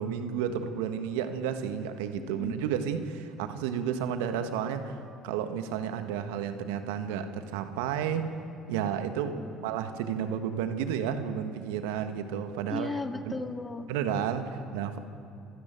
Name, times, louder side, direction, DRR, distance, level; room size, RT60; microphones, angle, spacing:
voice 1, 0.0-5.0 5.2-8.3 8.7-9.4 9.6-12.9 13.2-13.4 13.9-15.0, right 8 dB, 70° right, 9 dB, 1.6 m, -31 dB
voice 2, 12.7-13.9, left 3 dB, 20° left, 6 dB, 2.2 m, -36 dB
25.5 x 13.5 x 9.2 m, 2.6 s
hypercardioid pair, 55°, 0 cm